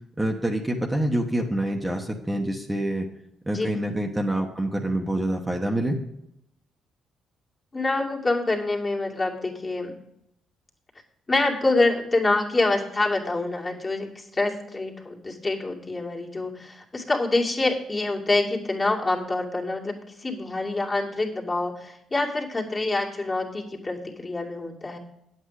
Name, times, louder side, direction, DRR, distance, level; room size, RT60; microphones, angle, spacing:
voice 1, 0.2-3.1 3.4-6.0, right 1 dB, 10° right, 1 dB, 1.3 m, -26 dB
voice 2, 7.7-9.9 11.3-25.0, left 2 dB, 25° left, -1 dB, 2.3 m, -26 dB
9.6 x 8.2 x 4.9 m, 0.79 s
cardioid pair, 90°, 0 cm